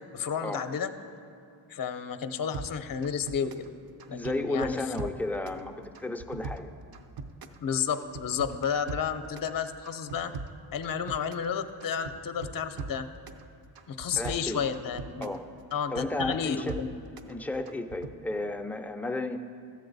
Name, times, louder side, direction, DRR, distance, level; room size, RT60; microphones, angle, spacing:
voice 1, 0.1-0.9 1.7-3.7 4.1-4.8 7.6-10.3 10.7-13.1 13.9-15.3 15.7-16.9, left 7 dB, 45° left, 10 dB, 0.6 m, -31 dB
sound 1, 2.5-3.7 4.0-5.6 5.9-7.6 7.9-9.5 9.8-11.5 11.8-13.4 13.8-15.4 15.7-17.3 17.7-18.1, right 4 dB, 50° right, 0.6 m, -40 dB
voice 2, 4.1-6.7 14.2-14.6 15.2-15.5 15.9-16.8 17.3-19.4, left 2 dB, 5° left, 5 dB, 0.4 m, -33 dB
13.0 x 8.5 x 4.0 m, 2.5 s
cardioid pair, 85°, 48 cm